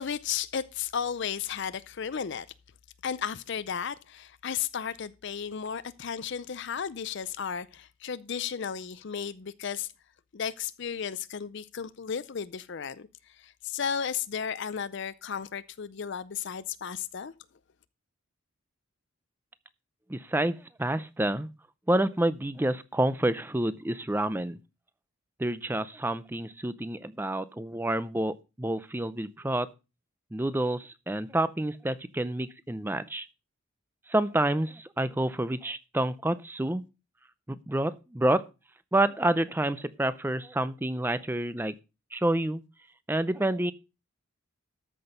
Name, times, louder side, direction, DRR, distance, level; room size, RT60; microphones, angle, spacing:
voice 1, 0.0-2.5 3.0-9.9 10.3-17.3, left 7 dB, 55° left, 0.5 m, -34 dB
voice 2, 20.1-21.5 21.9-24.6 25.4-29.7 30.3-33.3 34.1-36.8 37.5-38.4 38.9-41.7 42.1-42.6 43.1-43.7, right 1 dB, 10° right, 0.5 m, -28 dB
13.5 x 6.1 x 5.3 m
head